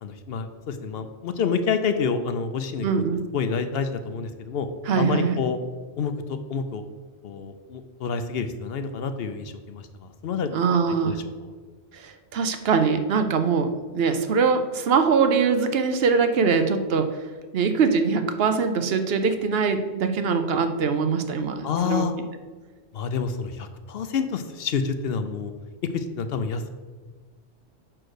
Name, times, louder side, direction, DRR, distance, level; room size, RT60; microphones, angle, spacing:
voice 1, 0.0-3.0 3.3-4.7 4.9-5.6 6.0-6.8 7.2-9.8 10.2-10.5 11.0-11.2 21.6-22.1 22.9-25.5 25.9-26.7, left 6 dB, 65° left, 8 dB, 0.8 m, -28 dB
voice 2, 2.8-3.2 4.9-5.4 10.5-11.2 11.9-17.1 17.5-22.0, right 5 dB, 65° right, 8 dB, 0.9 m, -22 dB
6.3 x 4.5 x 6.4 m, 1.4 s
omnidirectional pair, 1.1 m